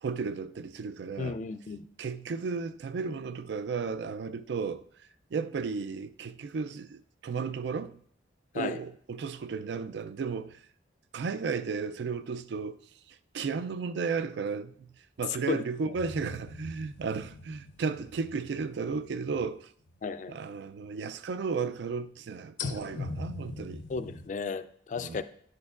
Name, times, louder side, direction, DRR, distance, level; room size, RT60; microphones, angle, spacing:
voice 1, 0.0-1.4 2.0-8.0 8.5-10.7 11.1-19.7 20.3-23.8 25.0-25.2, right 5 dB, 70° right, 0.4 m, -34 dB
voice 2, 1.2-1.8 8.5-8.8 15.5-15.6 20.0-20.4 23.9-25.2, left 4 dB, 45° left, 0.3 m, -34 dB
sound 1, 15.9-20.0 20.4-20.5 22.6-24.3, left 3 dB, 90° left, 0.6 m, -41 dB
10.5 x 6.5 x 2.4 m
head